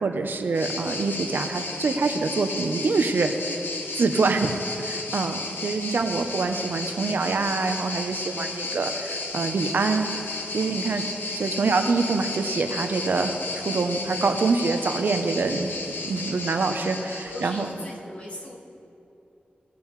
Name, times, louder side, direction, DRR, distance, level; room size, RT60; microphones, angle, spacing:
voice 1, 0.0-3.3 3.9-4.5 4.8-10.1 10.5-11.0 11.3-13.3 13.6-15.7 16.1-17.7, right 4 dB, 75° right, 6 dB, 0.7 m, -25 dB
sound 1, 0.5-17.9, left 3 dB, 85° left, 0.9 m, -33 dB
voice 2, 10.5-11.3 17.3-18.5, left 1 dB, 45° left, -6 dB, 2.4 m, -40 dB
18.5 x 7.0 x 3.2 m, 2.7 s
wide cardioid pair, 110°, 3 cm